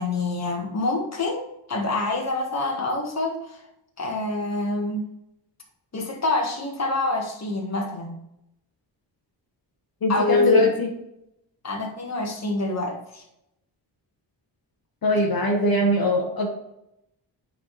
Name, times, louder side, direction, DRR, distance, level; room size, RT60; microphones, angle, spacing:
voice 1, 0.0-1.4 1.7-3.6 4.0-5.0 5.9-8.2 10.1-10.7 11.6-13.2, left 2 dB, 35° left, 0 dB, 1.6 m, -26 dB
voice 2, 10.0-10.9 15.0-16.5, left 1 dB, 55° left, -2 dB, 1.4 m, -21 dB
9.0 x 4.3 x 3.2 m, 0.82 s
wide cardioid pair, 130°, 43 cm